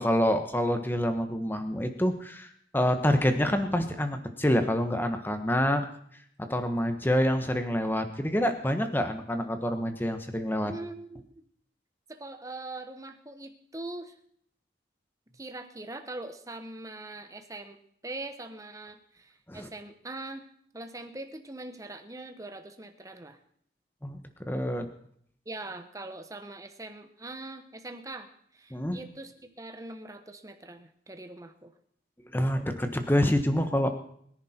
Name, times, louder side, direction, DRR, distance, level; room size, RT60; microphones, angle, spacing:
voice 1, 0.0-5.8 6.5-10.7 19.5-19.7 24.0-24.2 24.5-24.9 28.7-29.0 32.3-33.9, equal, 10° left, 7 dB, 1.3 m, -27 dB
voice 2, 10.6-11.4 12.1-14.1 15.3-17.8 18.0-20.5 20.7-23.4 25.4-31.7, right 2 dB, 20° right, 7 dB, 1.1 m, -42 dB
22.5 x 10.5 x 4.4 m, 0.65 s
head